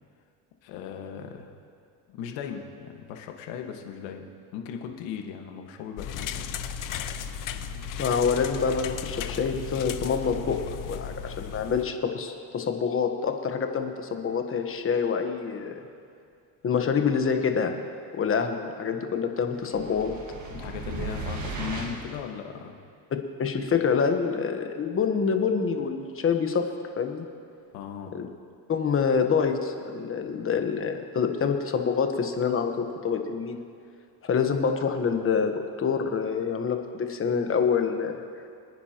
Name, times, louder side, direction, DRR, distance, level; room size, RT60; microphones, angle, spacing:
voice 1, 0.6-1.5 2.1-6.5 20.5-22.8 27.7-28.2, left 7 dB, 80° left, 3 dB, 1.7 m, -38 dB
sound 1, 6.0-11.8, left 7 dB, 45° left, 0.8 m, -35 dB
voice 2, 8.0-15.8 16.6-17.8 18.1-20.1 23.4-26.7 27.0-27.3 28.1-28.3 28.7-32.7 33.0-33.6 34.2-38.2, left 6 dB, 30° left, 5 dB, 1.2 m, -26 dB
sound 2, 19.6-22.2, right 2 dB, 40° right, 1.7 m, -36 dB
26.0 x 9.7 x 3.0 m, 2.3 s
cardioid pair, 130°, 44 cm